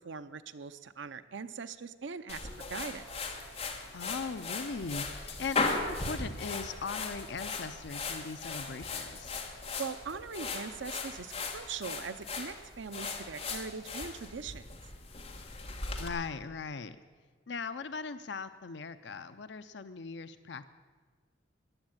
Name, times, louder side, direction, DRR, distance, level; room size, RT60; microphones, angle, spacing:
voice 1, 0.0-2.4 2.7-3.1 9.8-14.7, right 5 dB, 80° right, 12 dB, 0.7 m, -41 dB
sound 1, 2.3-16.1, left 3 dB, 35° left, 1.8 m, -38 dB
voice 2, 3.9-9.4 16.0-17.0 17.5-20.6, left 4 dB, 65° left, 11 dB, 0.6 m, -39 dB
15.0 x 10.5 x 8.9 m, 1.5 s
head